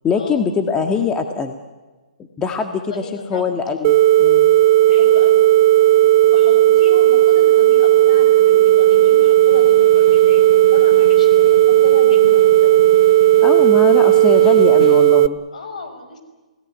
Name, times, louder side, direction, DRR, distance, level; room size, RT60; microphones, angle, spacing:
voice 1, 0.0-1.6 2.4-3.0 3.3-4.5 13.4-15.4, left 5 dB, 15° left, 6 dB, 1.7 m, -22 dB
voice 2, 2.7-3.5 4.8-5.5 6.2-13.0 15.5-16.2, left 3 dB, 65° left, 7 dB, 5.8 m, -33 dB
sound 1, 3.8-15.3, right 14 dB, 40° right, 0.9 m, -13 dB
Snare drum, 7.4-15.4, left 5 dB, 50° left, 5.8 m, -39 dB
28.5 x 17.5 x 9.8 m, 1.2 s
hypercardioid pair, 130°, 4 cm